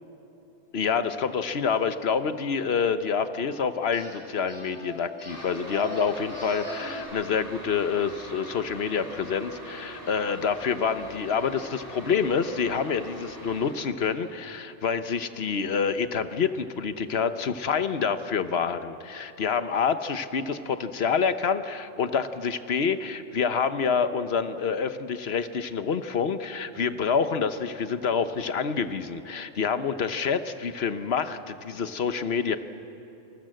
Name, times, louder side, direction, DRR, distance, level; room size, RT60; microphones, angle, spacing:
voice 1, 0.7-32.6, left 6 dB, 55° left, 11 dB, 1.2 m, -27 dB
sound 1, 3.9-4.1 4.5-7.0, left 1 dB, 15° right, 8.1 m, -39 dB
sound 2, 5.3-13.7, equal, 15° left, 4.5 m, -42 dB
27.5 x 20.0 x 7.8 m, 3.0 s
omnidirectional pair, 1.3 m